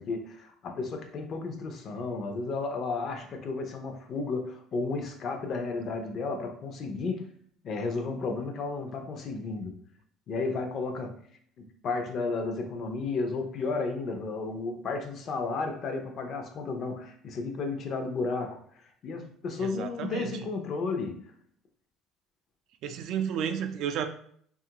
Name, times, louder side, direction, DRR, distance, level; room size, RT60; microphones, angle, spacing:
voice 1, 0.0-7.3 7.6-9.8 10.3-11.2 11.6-18.6 19.0-21.2, left 3 dB, 50° left, 5 dB, 0.5 m, -33 dB
voice 2, 19.6-20.4 22.8-24.1, right 8 dB, 65° right, 8 dB, 0.3 m, -32 dB
2.8 x 2.4 x 2.8 m, 0.62 s
supercardioid pair, 105°, 0 cm